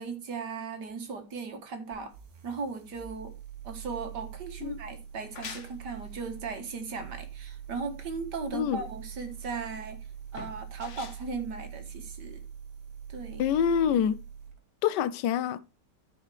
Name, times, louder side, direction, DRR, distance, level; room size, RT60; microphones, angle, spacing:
voice 1, 0.0-2.1 2.4-3.4 3.6-10.1 10.3-12.4 13.1-13.5, right 4 dB, 75° right, 2.1 m, -37 dB
sound 1, 1.9-14.6, right 8 dB, 60° right, 1.6 m, -44 dB
sound 2, 5.0-12.5, left 6 dB, 50° left, 1.2 m, -48 dB
voice 2, 13.4-14.2 14.8-15.6, left 8 dB, 85° left, 1.2 m, -26 dB
14.0 x 4.8 x 3.3 m
omnidirectional pair, 1.8 m